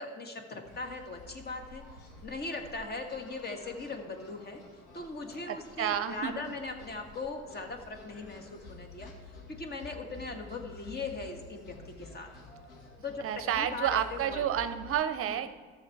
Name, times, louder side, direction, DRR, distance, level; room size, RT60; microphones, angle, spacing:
voice 1, 0.0-1.8 2.2-4.6 4.9-12.3 13.0-14.4 15.2-15.4, left 3 dB, 35° left, 5 dB, 1.5 m, -39 dB
sound 1, 0.6-14.9, left 2 dB, 85° left, 1.8 m, -51 dB
voice 2, 5.8-6.4 13.2-15.5, right 9 dB, 50° right, 11 dB, 0.6 m, -30 dB
13.0 x 6.8 x 4.7 m, 1.5 s
supercardioid pair, 85°, 29 cm